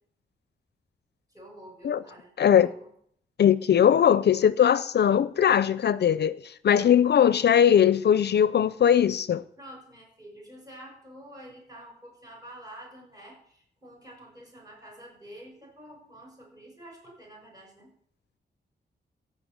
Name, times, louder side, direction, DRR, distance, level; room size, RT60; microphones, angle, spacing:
voice 1, 1.3-2.9 9.6-17.9, right 1 dB, 20° right, 6.6 m, -48 dB
voice 2, 2.4-2.7 3.4-9.4, left 9 dB, 65° left, 0.5 m, -20 dB
15.0 x 5.7 x 7.9 m
wide cardioid pair, 115°, 18 cm